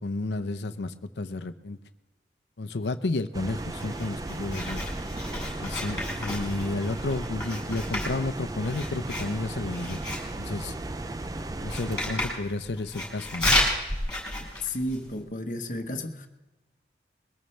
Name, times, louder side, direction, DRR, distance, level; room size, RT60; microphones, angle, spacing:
voice 1, 0.0-1.8 2.6-4.9 5.6-10.0 10.4-10.7 11.6-13.6, left 2 dB, 80° left, 9 dB, 0.7 m, -31 dB
sound 1, 3.3-12.2, right 2 dB, 20° right, 0.4 m, -36 dB
Writing, 3.6-15.2, left 1 dB, 5° left, 5.2 m, -32 dB
voice 2, 14.4-16.3, left 1 dB, 45° left, 6 dB, 1.1 m, -33 dB
21.5 x 14.0 x 3.3 m, 1.1 s
head